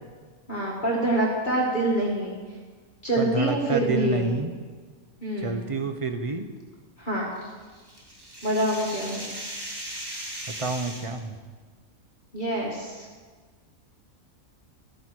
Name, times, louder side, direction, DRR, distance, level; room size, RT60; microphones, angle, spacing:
voice 1, 0.5-2.4 3.0-4.3 5.2-5.6 7.0-7.2 8.4-9.3 12.3-13.1, right 1 dB, 35° left, -4 dB, 1.9 m, -26 dB
voice 2, 3.2-4.5 5.4-6.5 10.5-11.4, right 3 dB, 35° right, 7 dB, 0.6 m, -29 dB
sound 1, 7.4-11.2, right 1 dB, 15° right, 1.5 m, -38 dB
13.0 x 9.6 x 4.7 m, 1.5 s
omnidirectional pair, 1.5 m